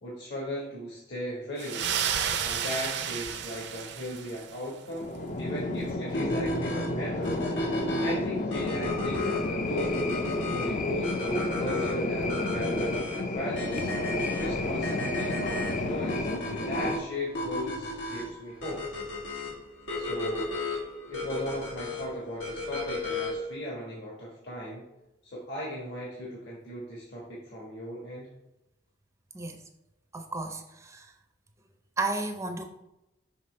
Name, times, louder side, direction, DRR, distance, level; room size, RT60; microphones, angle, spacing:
voice 1, 0.0-1.9 2.4-5.1 5.4-7.5 8.0-9.9 10.5-13.9 14.4-18.9 20.0-20.5 21.1-24.8 25.2-28.3, left 1 dB, 65° left, -5 dB, 1.4 m, -37 dB
sound 1, 1.6-4.6, right 8 dB, 65° right, 0.6 m, -31 dB
sound 2, 4.9-17.0, left 2 dB, 45° left, 0.5 m, -31 dB
sound 3, 6.1-23.5, left 1 dB, 90° left, 1.5 m, -34 dB
voice 2, 30.1-31.1 32.0-32.6, right 2 dB, 15° right, 5 dB, 0.5 m, -33 dB
5.7 x 5.7 x 3.2 m, 0.92 s
head